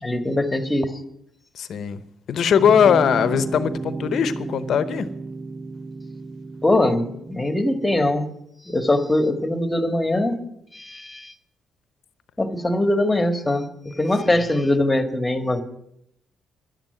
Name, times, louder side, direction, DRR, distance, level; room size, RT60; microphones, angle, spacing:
voice 1, 0.0-0.9 6.6-8.3 8.7-10.4 10.7-11.3 12.4-13.6 14.0-15.6, left 1 dB, 10° left, 1.6 m, -21 dB
voice 2, 1.5-2.0 2.3-5.1, left 7 dB, 65° left, 0.9 m, -20 dB
sound 1, 2.6-8.0, right 3 dB, 35° right, 0.8 m, -33 dB
11.5 x 9.0 x 7.8 m
cardioid pair, 90°, 0 cm